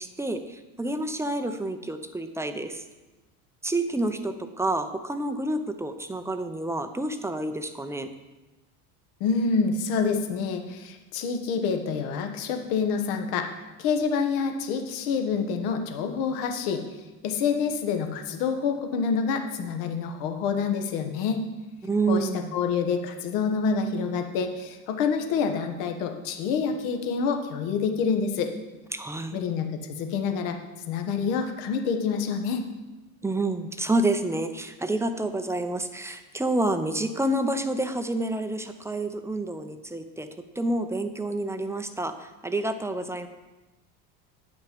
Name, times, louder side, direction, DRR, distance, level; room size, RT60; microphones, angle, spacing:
voice 1, 0.0-2.8 3.6-8.1 21.8-22.6 28.9-29.4 33.2-40.3 40.6-43.3, right 2 dB, 5° right, 8 dB, 0.5 m, -28 dB
voice 2, 9.2-13.5 13.8-16.8 17.2-21.4 22.1-28.5 29.3-30.6 30.9-32.6, left 5 dB, 65° left, 5 dB, 1.4 m, -27 dB
9.1 x 5.9 x 5.1 m, 1.1 s
hypercardioid pair, 80°, 49 cm